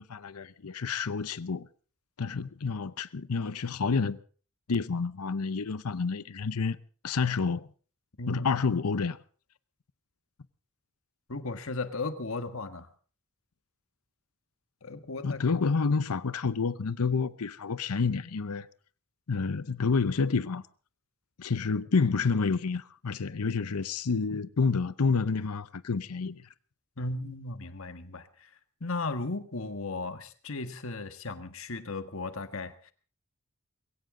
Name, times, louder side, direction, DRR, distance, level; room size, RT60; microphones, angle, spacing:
voice 1, 0.0-1.7 2.2-4.2 4.7-6.8 7.0-7.7 8.3-9.2 15.2-18.7 19.3-20.6 21.4-26.5, left 4 dB, 90° left, 0.7 m, -29 dB
voice 2, 8.2-8.5 11.3-12.9 14.8-15.4 27.0-28.5 28.8-32.7, left 3 dB, 65° left, 1.5 m, -35 dB
22.0 x 17.0 x 3.8 m
head